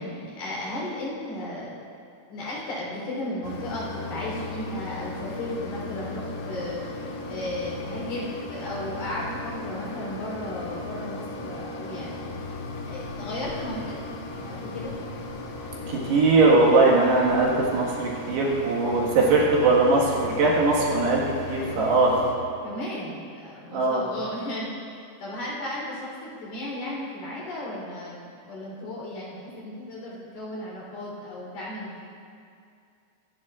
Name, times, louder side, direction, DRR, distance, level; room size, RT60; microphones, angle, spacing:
voice 1, 0.0-1.7 2.3-6.8 7.3-12.3 12.8-14.9 22.6-32.0, left 1 dB, 60° left, -5 dB, 5.4 m, -35 dB
Mechanisms, 3.4-22.4, left 2 dB, 90° left, 3.4 m, -36 dB
voice 2, 15.9-21.2 21.5-22.2 23.7-24.0, right 3 dB, 70° right, -4 dB, 3.6 m, -20 dB
23.5 x 10.5 x 2.5 m, 2.4 s
omnidirectional pair, 5.1 m